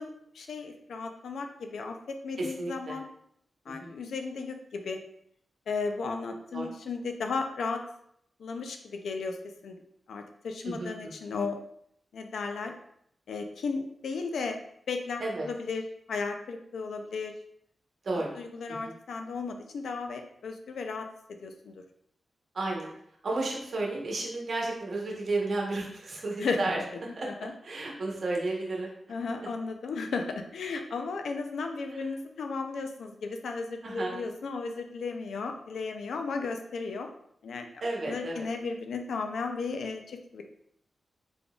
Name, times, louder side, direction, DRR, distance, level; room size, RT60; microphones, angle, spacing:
voice 1, 0.0-3.0 3.7-5.0 5.7-7.8 8.4-9.8 10.1-11.6 12.1-12.7 13.3-14.6 14.9-17.3 18.4-21.8 26.4-26.6 27.2-27.5 29.1-37.1 37.4-37.7 38.1-40.4, left 4 dB, 90° left, 5 dB, 0.4 m, -35 dB
voice 2, 2.4-2.9 3.7-3.9 6.5-6.7 10.6-10.9 15.2-15.5 18.0-18.4 18.8-18.9 22.5-22.9 23.2-26.8 27.2-27.3 27.6-28.9 31.9-32.0 33.8-34.1 37.8-38.5, right 2 dB, 60° right, -1 dB, 1.0 m, -32 dB
3.8 x 3.3 x 2.3 m, 0.70 s
wide cardioid pair, 90°, 0 cm